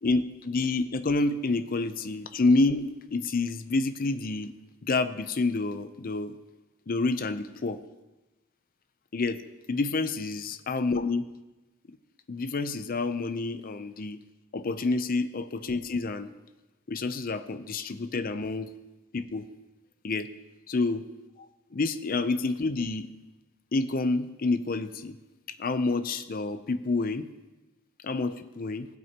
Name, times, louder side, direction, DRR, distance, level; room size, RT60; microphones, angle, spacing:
voice 1, 0.0-4.5 4.8-6.3 6.9-7.8 9.1-9.4 9.7-11.3 12.3-14.2 14.5-16.3 16.9-18.7 19.1-19.4 20.0-20.3 20.7-21.0 21.4-21.5 21.7-23.1 23.7-25.1 25.6-27.3 28.0-28.9, left 3 dB, 45° left, 10 dB, 0.5 m, -28 dB
17.5 x 7.7 x 2.9 m, 1.1 s
head